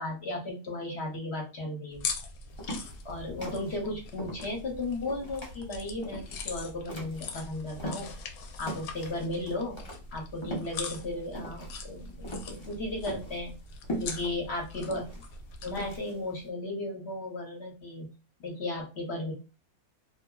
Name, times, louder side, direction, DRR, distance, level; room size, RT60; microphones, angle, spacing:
voice 1, 0.0-2.1 3.0-8.1 8.6-9.8 10.1-13.5 14.0-15.1 15.6-18.1 18.4-19.3, left 2 dB, 50° left, -1 dB, 1.0 m, -35 dB
sound 1, 1.9-16.0, left 4 dB, 75° left, 1.0 m, -42 dB
sound 2, 2.5-8.3 8.6-16.4, equal, 35° left, 0.5 m, -41 dB
2.7 x 2.6 x 2.3 m, 0.30 s
omnidirectional pair, 1.6 m